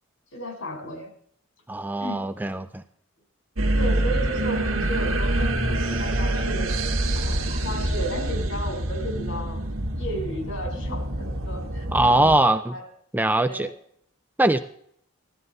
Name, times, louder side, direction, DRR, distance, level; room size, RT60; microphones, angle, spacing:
voice 1, 0.3-1.1 2.0-2.2 3.7-6.7 7.2-9.6 10.0-12.8 13.4-13.7, right 1 dB, 70° left, 3 dB, 3.9 m, -34 dB
voice 2, 1.7-2.8 11.9-12.7 13.1-13.7 14.4-14.6, right 2 dB, 10° right, 10 dB, 0.4 m, -21 dB
sound 1, 3.6-12.4, right 1 dB, 80° right, 1.6 m, -26 dB
15.5 x 12.5 x 4.0 m, 0.67 s
head